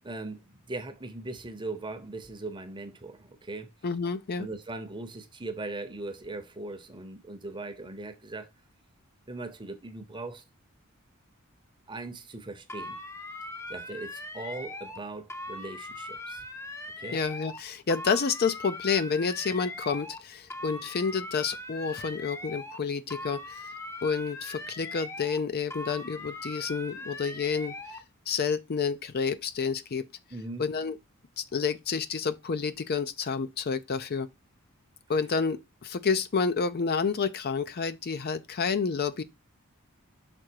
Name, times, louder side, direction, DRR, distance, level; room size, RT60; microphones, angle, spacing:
voice 1, 0.0-3.7 4.4-8.5 9.3-10.4 11.9-13.0 13.7-16.4 17.0-17.2 30.3-30.6, right 2 dB, 20° right, 0.9 m, -39 dB
voice 2, 3.8-4.5 17.1-23.6 24.0-27.7 28.3-30.0 30.6-31.0 31.4-34.3 35.1-39.2, left 5 dB, 45° left, 0.5 m, -29 dB
sound 1, 12.7-15.0 15.3-17.6 17.9-20.2 20.5-22.8 23.1-25.4 25.7-28.0, left 2 dB, 15° left, 0.7 m, -40 dB
6.1 x 3.8 x 4.5 m
head